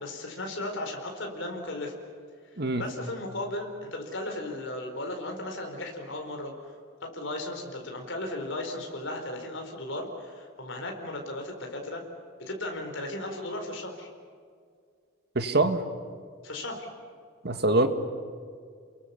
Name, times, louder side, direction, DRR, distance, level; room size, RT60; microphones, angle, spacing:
voice 1, 0.0-1.9 2.8-6.7 7.1-12.0 12.5-14.1 16.4-16.9, left 1 dB, 65° left, 2 dB, 4.6 m, -36 dB
voice 2, 15.4-15.8 17.4-17.9, right 2 dB, 50° right, 7 dB, 1.9 m, -24 dB
29.5 x 22.5 x 7.0 m, 2.1 s
head